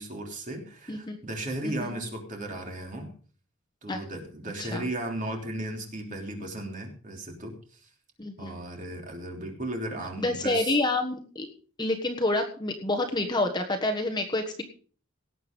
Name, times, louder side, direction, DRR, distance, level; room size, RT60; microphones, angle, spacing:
voice 1, 0.0-3.1 3.8-7.9 8.4-10.7, right 1 dB, 35° right, 2 dB, 3.2 m, -36 dB
voice 2, 1.6-1.9 3.9-4.0 4.6-4.8 8.2-8.6 10.2-11.5 11.8-14.6, left 2 dB, 20° left, 3 dB, 1.4 m, -28 dB
18.0 x 8.1 x 5.2 m, 0.42 s
head